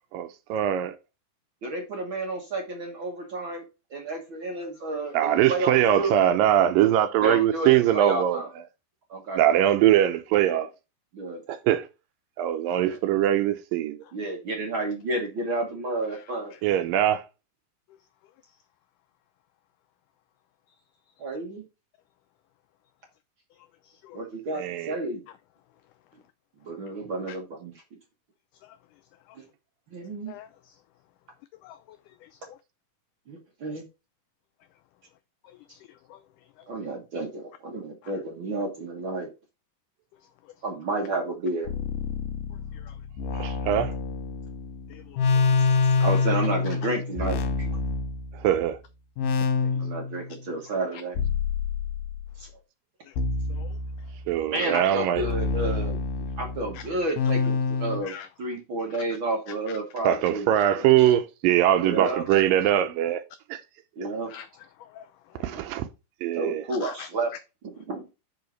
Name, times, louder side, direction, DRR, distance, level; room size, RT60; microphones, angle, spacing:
voice 1, 0.1-0.9 5.1-8.7 9.4-10.7 11.5-11.9 12.4-14.0 16.6-17.2 24.5-25.0 43.3-43.9 48.4-48.8 54.3-55.3 60.0-63.2 63.5-63.6 65.4-65.9 66.2-66.7, right 11 dB, 80° right, 2.2 m, -22 dB
voice 2, 1.6-3.6 3.9-6.1 7.2-8.5 9.1-9.4 11.1-11.4 12.7-13.0 14.1-16.5 21.2-21.6 24.1-25.2 26.6-27.7 29.3-29.4 29.9-30.3 33.3-33.8 36.7-39.3 40.6-41.7 46.0-47.8 49.8-51.2 52.4-52.5 54.5-56.0 56.4-60.8 61.8-62.2 64.0-64.3 66.3-67.3 67.6-68.0, right 2 dB, 55° right, 1.5 m, -31 dB
voice 3, 31.6-32.0 35.7-35.8 36.1-36.2 42.9-43.0 44.9-45.7 53.5-53.7 56.7-56.8 58.0-58.3 60.6-60.7 61.0-61.1 62.3-62.4 64.3-64.5 64.8-65.1 66.8-67.1, left 10 dB, 85° left, 1.8 m, -44 dB
sound 1, 41.7-48.7 49.2-50.3 51.2-52.3 53.2-54.4 55.2-58.0, left 4 dB, 70° left, 2.7 m, -27 dB
6.7 x 5.5 x 4.5 m
omnidirectional pair, 4.2 m